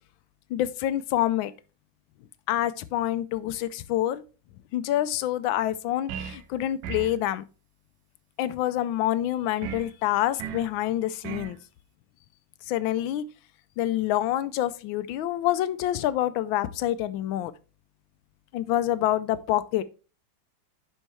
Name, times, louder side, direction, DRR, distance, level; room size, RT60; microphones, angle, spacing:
voice 1, 0.5-1.5 2.5-4.2 4.7-7.4 8.4-11.6 12.7-13.2 13.8-17.5 18.5-19.8, left 13 dB, 90° left, 1.4 m, -27 dB
sound 1, 6.1-6.5 6.8-7.2 9.6-9.9 10.4-10.7 11.2-11.6, right 8 dB, 80° right, 1.4 m, -36 dB
10.5 x 4.6 x 3.0 m
omnidirectional pair, 2.1 m